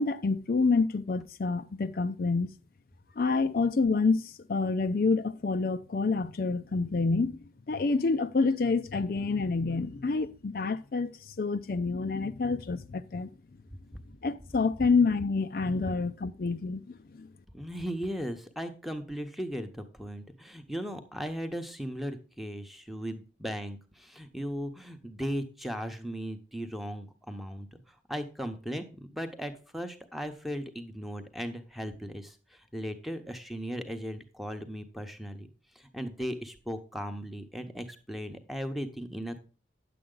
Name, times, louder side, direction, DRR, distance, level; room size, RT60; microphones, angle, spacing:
voice 1, 0.0-2.5 3.2-7.4 7.7-13.3 14.2-17.3, left 4 dB, 50° left, 0.4 m, -28 dB
voice 2, 17.5-35.5 35.8-39.5, equal, ahead, 0.9 m, -37 dB
9.8 x 7.7 x 3.8 m
head